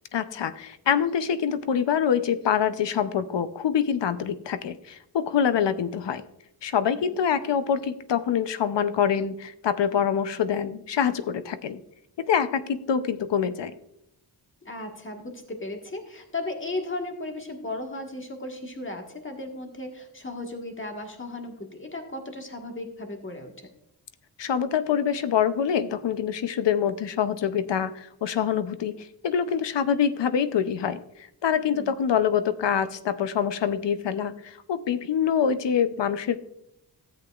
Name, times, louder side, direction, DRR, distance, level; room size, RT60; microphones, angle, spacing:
voice 1, 0.1-6.2 6.6-11.8 12.3-13.7 24.4-31.0 31.4-36.4, left 8 dB, 80° left, 12 dB, 0.7 m, -25 dB
voice 2, 14.6-23.7 31.7-32.0, left 2 dB, 30° left, 3 dB, 1.5 m, -36 dB
13.5 x 8.0 x 2.4 m, 0.79 s
wide cardioid pair, 80°, 42 cm